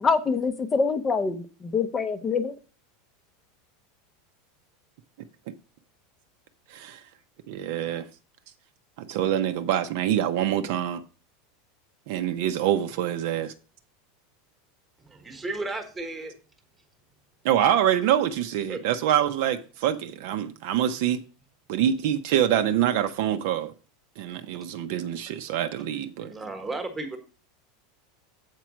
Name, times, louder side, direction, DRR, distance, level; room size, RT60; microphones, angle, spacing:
voice 1, 0.0-1.4 1.7-2.5, left 4 dB, 15° left, 0.6 m, -24 dB
voice 2, 7.5-8.0 9.0-11.0 12.1-13.5 17.4-21.2 21.7-23.7 24.2-26.3, right 10 dB, 50° right, 0.7 m, -25 dB
voice 3, 15.1-16.3 18.7-18.8 26.2-27.2, right 2 dB, 10° right, 1.2 m, -34 dB
8.2 x 4.5 x 6.1 m
supercardioid pair, 180°, 0 cm